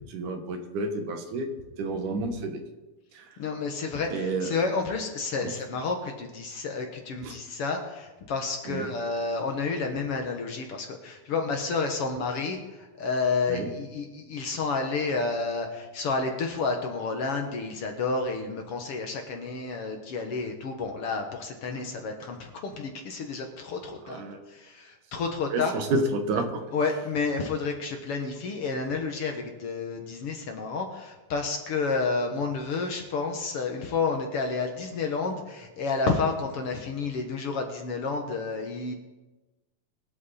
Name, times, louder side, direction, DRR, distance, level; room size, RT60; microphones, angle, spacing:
voice 1, 0.1-1.5 1.8-2.6 3.2-3.3 4.1-4.5 5.4-5.5 7.2-7.4 8.7-8.9 13.5-13.7 24.1-24.5 25.5-26.6, right 2 dB, 85° right, 5 dB, 2.9 m, -30 dB
voice 2, 3.4-12.6 13.0-24.2 24.5-25.7 26.7-38.9, left 4 dB, 55° left, 3 dB, 1.9 m, -30 dB
22.5 x 8.3 x 4.2 m, 1.1 s
omnidirectional pair, 3.5 m